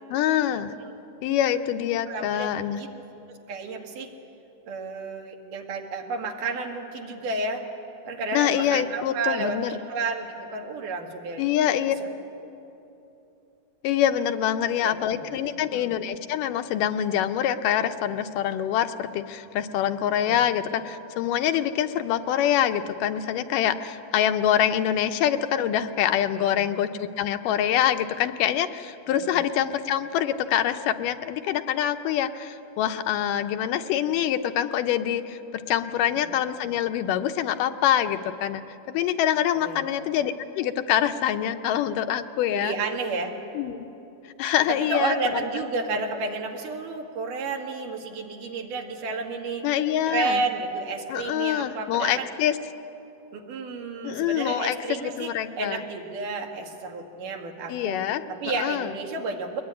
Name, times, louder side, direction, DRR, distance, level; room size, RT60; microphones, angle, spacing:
voice 1, 0.1-0.7 1.2-2.8 8.3-9.7 11.4-12.0 13.8-38.6 38.9-42.7 43.6-43.9 44.4-45.4 49.6-50.4 51.1-52.6 54.0-54.8 55.0-55.8 57.7-58.2 58.6-58.9, left 10 dB, 90° left, 8 dB, 2.4 m, -25 dB
voice 2, 2.1-2.9 3.5-4.1 4.7-7.6 8.0-11.4 12.0-12.1 14.8-15.9 20.3-20.4 26.3-26.7 29.1-29.4 36.0-36.3 39.5-39.8 42.5-43.4 44.7-49.7 50.1-52.3 53.3-58.0 58.3-59.6, right 3 dB, 80° right, 2 dB, 3.4 m, -31 dB
22.5 x 20.5 x 9.7 m, 2.9 s
omnidirectional pair, 3.7 m